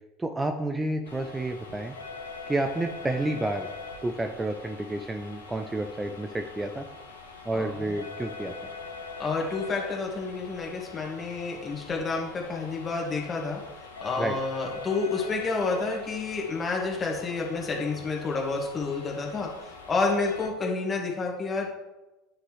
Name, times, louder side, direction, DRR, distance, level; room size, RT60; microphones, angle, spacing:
voice 1, 0.2-1.9 2.5-3.7 4.0-6.8 7.4-8.7 14.2-14.4, right 2 dB, 15° right, 5 dB, 0.5 m, -30 dB
sound 1, 1.0-20.5, left 4 dB, 90° left, 0.8 m, -43 dB
voice 2, 7.5-8.0 9.2-13.6 14.0-21.7, left 3 dB, 30° left, -1 dB, 1.8 m, -29 dB
9.8 x 3.8 x 3.1 m, 1.0 s
hypercardioid pair, 75°, 0 cm